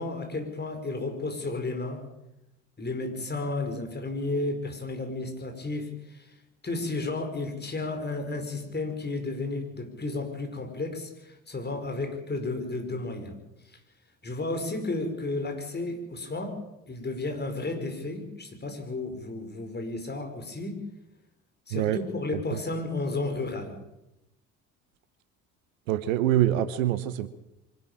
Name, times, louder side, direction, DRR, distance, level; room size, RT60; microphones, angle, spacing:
voice 1, 0.0-2.0 2.8-6.3 6.6-13.4 13.7-13.8 14.2-16.6 16.9-20.8 21.7-23.8, left 2 dB, 25° left, 5 dB, 5.2 m, -33 dB
voice 2, 25.9-27.3, right 12 dB, 70° right, 15 dB, 1.1 m, -25 dB
24.5 x 12.0 x 8.9 m, 0.92 s
figure-of-eight pair, 55°, 41 cm